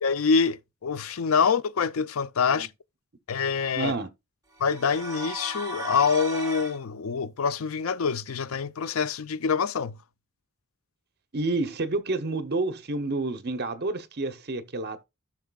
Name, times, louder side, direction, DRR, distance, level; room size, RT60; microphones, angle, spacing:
voice 1, 0.0-2.7 3.3-3.9 4.6-9.9, left 5 dB, 70° left, 0.5 m, -25 dB
voice 2, 3.8-4.1 11.3-15.0, right 2 dB, 50° right, 0.9 m, -29 dB
sound 1, 4.6-6.8, right 2 dB, 15° right, 2.3 m, -36 dB
15.0 x 6.0 x 2.3 m
head